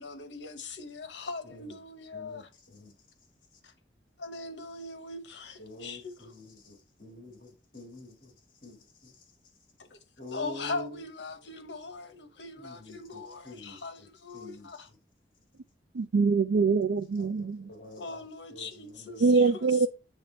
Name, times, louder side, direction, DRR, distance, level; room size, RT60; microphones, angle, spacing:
voice 1, 0.0-2.5 3.6-3.7 4.2-6.3 9.8-10.0 10.3-14.9 18.0-19.9, left 3 dB, 80° left, 0.9 m, -40 dB
voice 2, 5.6-8.3 8.6-8.8 9.0-9.1 10.2-10.9 12.6-13.2 13.4-13.8 14.3-14.7 17.2-18.2 18.5-18.7 18.9-19.3, left 1 dB, 50° left, 1.8 m, -46 dB
voice 3, 15.9-17.7 19.2-19.9, right 4 dB, 85° right, 0.4 m, -24 dB
7.3 x 3.4 x 4.3 m
head